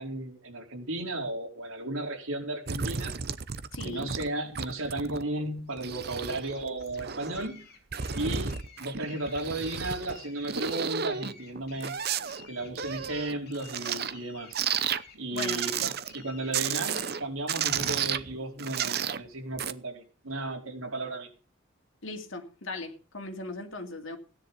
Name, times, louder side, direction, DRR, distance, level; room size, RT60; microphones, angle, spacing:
voice 1, 0.0-3.2 3.8-7.7 8.1-8.5 8.8-11.9 12.5-14.6 15.1-21.3, right 2 dB, 80° right, 4.4 m, -34 dB
sound 1, 2.7-4.3 4.6-5.2 5.6-7.5 7.9-10.2 10.4-14.2 14.5-15.0 15.4-16.2 16.5-17.2 17.5-19.2 19.6-19.7, right 7 dB, 45° right, 0.8 m, -32 dB
voice 2, 3.7-4.1 8.1-8.4 15.3-15.9 22.0-24.2, left 2 dB, 65° left, 2.6 m, -38 dB
sound 2, 5.7-18.1, left 6 dB, 45° left, 3.3 m, -53 dB
16.0 x 10.5 x 5.5 m
head